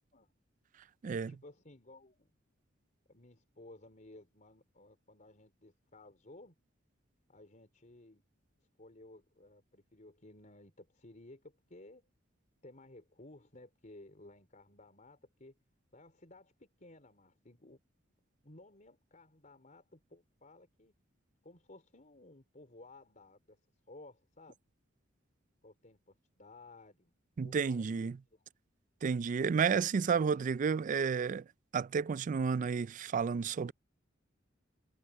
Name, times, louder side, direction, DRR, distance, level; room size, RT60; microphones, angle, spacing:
voice 1, 1.1-2.3 3.1-6.6 7.3-8.2 8.8-12.0 12.6-15.6 15.9-17.8 18.4-20.9 21.4-23.6 23.9-24.6 25.6-27.1 27.4-28.5, left 2 dB, 40° left, 4.1 m, -56 dB
voice 2, 27.4-28.2 29.0-31.4 31.7-33.7, right 6 dB, 40° right, 0.3 m, -31 dB
head